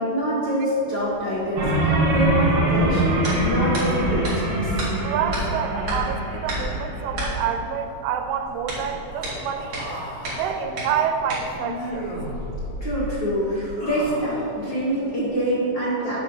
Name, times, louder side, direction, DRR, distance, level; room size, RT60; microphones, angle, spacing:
voice 1, 0.0-4.8 12.8-16.2, equal, 75° left, -10 dB, 1.0 m, -25 dB
sound 1, 1.0-15.6, right 1 dB, 40° right, 2.0 m, -36 dB
sound 2, 1.6-7.3, right 1 dB, 60° right, 3.2 m, -23 dB
voice 2, 5.0-9.8 10.3-12.1, right 7 dB, 85° right, 6 dB, 2.8 m, -27 dB
Human voice, 9.1-10.6 11.6-12.4 13.3-14.5, equal, 35° left, 1.1 m, -36 dB
8.7 x 5.2 x 6.7 m, 3.0 s
omnidirectional pair, 5.1 m